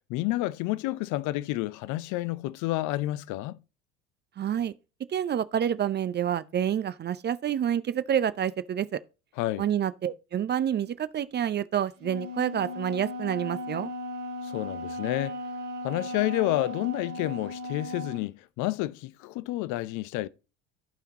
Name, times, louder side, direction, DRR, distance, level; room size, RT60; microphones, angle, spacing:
voice 1, 0.1-3.6 9.4-9.7 14.4-15.4 15.8-20.3, left 17 dB, 50° left, 0.7 m, -30 dB
voice 2, 4.4-4.7 5.1-9.0 9.6-13.9, right 9 dB, 30° right, 0.6 m, -28 dB
Wind instrument woodwind instrument, 12.0-18.3, left 1 dB, 75° right, 2.1 m, -36 dB
15.0 x 5.7 x 3.0 m
figure-of-eight pair, 65°, 38 cm